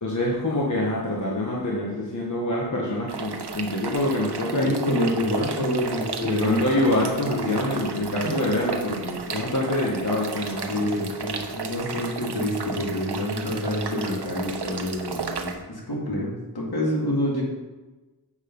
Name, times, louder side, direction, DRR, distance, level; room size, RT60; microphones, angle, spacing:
voice 1, 0.0-4.7 6.2-11.1, left 1 dB, 45° left, -3 dB, 1.4 m, -26 dB
sound 1, 3.1-15.5, right 5 dB, 90° right, 0.8 m, -33 dB
voice 2, 4.5-6.6 7.2-7.5 7.7-7.8 10.7-17.4, left 1 dB, 70° left, -3 dB, 2.4 m, -27 dB
7.4 x 6.5 x 5.3 m, 1.2 s
wide cardioid pair, 80°, 39 cm